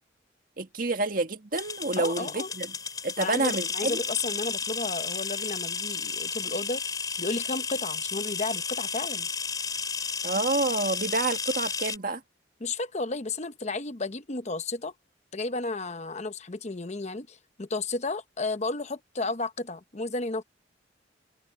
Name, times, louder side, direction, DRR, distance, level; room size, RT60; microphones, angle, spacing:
voice 1, 0.6-2.7 3.0-4.0 10.2-12.2, right 3 dB, 50° right, 1.9 m, -28 dB
sound 1, 1.5-12.0, left 5 dB, 20° left, 4.5 m, -33 dB
voice 2, 2.0-2.5 3.2-6.8 7.2-9.3 12.6-14.9 15.3-20.4, left 3 dB, 35° left, 0.9 m, -33 dB
open air
head